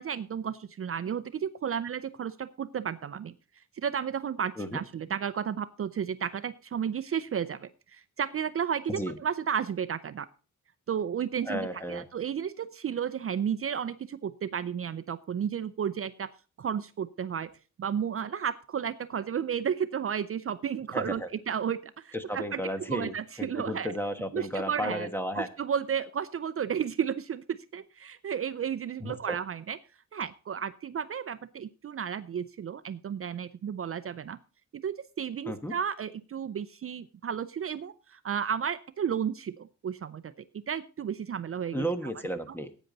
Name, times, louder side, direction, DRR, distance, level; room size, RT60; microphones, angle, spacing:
voice 1, 0.0-3.3 3.7-10.3 10.9-16.3 16.6-17.5 17.8-22.6 22.9-23.9 24.3-25.1 25.3-29.8 30.1-34.4 34.7-40.3 40.7-41.8 42.5-42.6, right 8 dB, 45° right, 12 dB, 0.5 m, -33 dB
voice 2, 11.4-12.0 20.9-21.3 22.1-25.5 29.0-29.3 35.5-35.7 41.7-42.7, equal, 5° left, 8 dB, 1.2 m, -33 dB
15.5 x 9.1 x 4.0 m, 0.36 s
wide cardioid pair, 160°, 30 cm